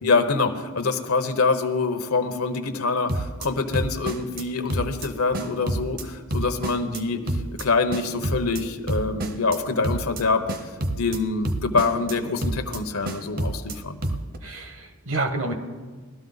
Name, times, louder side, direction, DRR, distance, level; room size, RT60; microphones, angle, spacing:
voice 1, 0.0-7.2 7.6-14.2 15.4-15.5, left 4 dB, 80° left, 7 dB, 0.9 m, -25 dB
sound 1, 3.1-3.5 3.7-4.4 4.7-5.1 5.3-6.0 6.3-7.0 7.3-7.6 7.9-8.6 8.9-9.6 9.8-10.2 10.5-11.2 11.4-12.1 12.4-12.8 13.0-13.7 14.0-14.4, right 1 dB, 40° right, 0.8 m, -28 dB
voice 2, 14.4-15.5, right 2 dB, 65° right, 5 dB, 1.4 m, -29 dB
19.0 x 12.5 x 4.0 m, 1.4 s
head